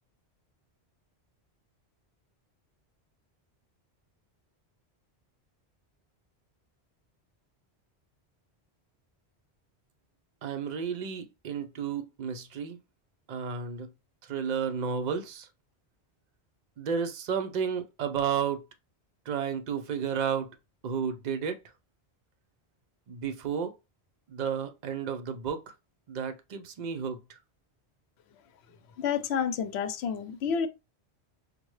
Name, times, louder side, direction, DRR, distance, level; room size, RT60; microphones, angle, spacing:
voice 1, 10.4-12.8 13.3-13.9 14.3-15.5 16.8-18.6 19.3-20.5 20.8-21.6 23.1-23.7 24.3-25.6 26.1-27.2, right 7 dB, 50° right, 0.6 m, -32 dB
voice 2, 29.0-30.7, left 7 dB, 75° left, 0.8 m, -29 dB
5.2 x 2.1 x 3.1 m
omnidirectional pair, 1.1 m